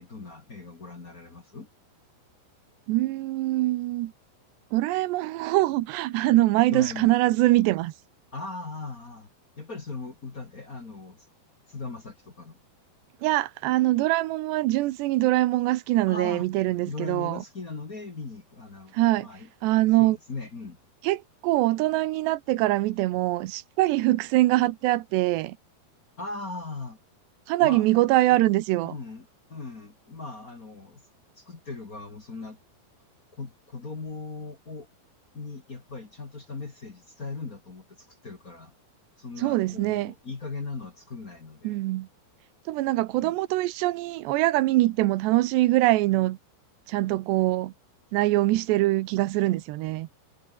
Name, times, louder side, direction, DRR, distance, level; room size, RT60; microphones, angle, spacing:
voice 1, 0.0-1.7 6.7-7.1 8.3-9.3 9.5-11.3 11.7-12.6 16.1-16.5 16.9-19.5 20.0-20.8 26.2-27.0 27.6-28.4 28.8-31.0 31.4-32.6 33.3-34.9 35.3-38.7 39.2-41.8 43.1-43.3, left 3 dB, 30° left, 1.6 m, -39 dB
voice 2, 2.9-4.1 4.7-7.9 13.2-17.4 18.9-19.3 19.6-20.2 21.0-25.6 27.5-28.9 39.4-40.1 41.6-42.1 42.7-46.4 46.9-47.7 48.1-50.1, right 17 dB, 90° right, 3.1 m, -23 dB
omnidirectional pair, 4.9 m